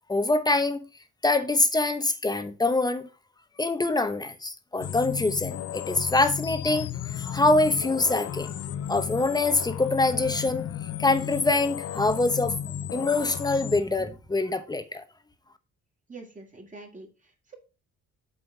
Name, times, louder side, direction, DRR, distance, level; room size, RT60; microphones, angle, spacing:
voice 1, 0.1-0.8 1.2-3.1 3.6-8.5 8.9-10.7 11.0-12.6 12.9-15.0, left 2 dB, 15° left, 1.0 m, -24 dB
sound 1, 4.8-13.8, left 9 dB, 55° left, 0.6 m, -34 dB
voice 2, 16.1-17.5, right 3 dB, 25° right, 2.4 m, -45 dB
8.0 x 3.9 x 4.9 m
cardioid pair, 90°, 30 cm